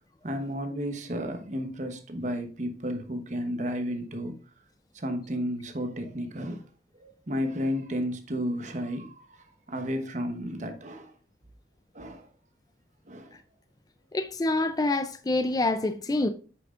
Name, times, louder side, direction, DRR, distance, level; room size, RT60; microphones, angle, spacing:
voice 1, 0.2-4.4 4.9-6.6 7.0-11.1 11.9-12.3 13.1-13.4, equal, 45° right, 1.0 m, -33 dB
voice 2, 14.1-16.3, left 2 dB, 20° left, 0.4 m, -26 dB
8.5 x 6.0 x 2.4 m
head